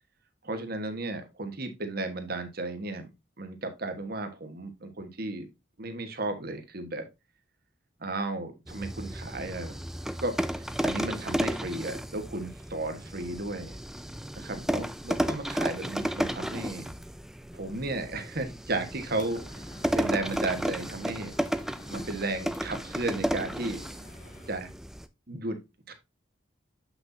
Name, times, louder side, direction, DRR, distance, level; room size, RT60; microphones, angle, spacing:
voice 1, 0.4-3.1 3.4-5.5 5.8-7.1 8.0-9.8 10.2-13.8 14.3-16.9 17.5-19.4 19.9-21.3 21.9-23.8 24.5-24.7 25.3-25.6 25.9-26.0, right 2 dB, 50° right, 7 dB, 1.4 m, -34 dB
sound 1, 8.7-25.1, equal, ahead, 0.4 m, -33 dB
sound 2, 18.9-24.6, left 1 dB, 40° left, 1.7 m, -50 dB
7.7 x 6.1 x 2.7 m, 0.23 s
head